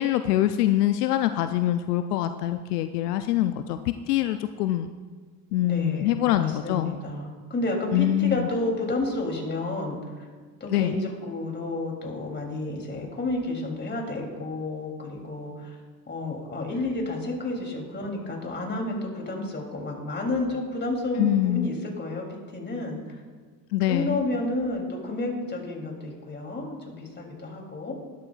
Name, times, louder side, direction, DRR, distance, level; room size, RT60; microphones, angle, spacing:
voice 1, 0.0-3.8 4.1-4.9 5.5-6.9 7.9-8.5 10.7-11.1 21.2-21.7 23.7-24.2, left 13 dB, 80° left, 10 dB, 0.6 m, -24 dB
voice 2, 5.6-10.0 10.6-15.8 16.1-23.2 23.9-27.9, left 2 dB, 20° left, 0 dB, 3.2 m, -31 dB
12.0 x 12.0 x 2.5 m, 1.5 s
hypercardioid pair, 75°, 46 cm